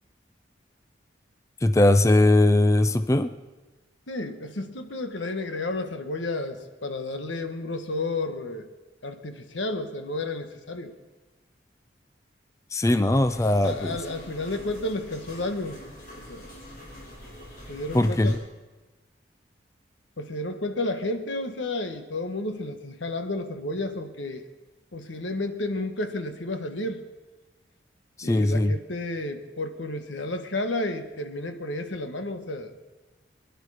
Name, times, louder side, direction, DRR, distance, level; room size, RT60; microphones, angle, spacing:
voice 1, 1.6-3.3 12.7-14.0 17.9-18.4 28.2-28.7, left 1 dB, 15° left, 10 dB, 0.4 m, -20 dB
voice 2, 4.1-8.7 9.0-10.9 13.6-15.8 16.3-16.5 17.7-18.4 20.2-24.4 24.9-27.0 28.2-32.7, left 2 dB, 85° left, 7 dB, 1.4 m, -31 dB
sound 1, 13.1-18.3, left 1 dB, 50° left, 6.3 m, -44 dB
23.0 x 11.0 x 4.9 m, 1.2 s
head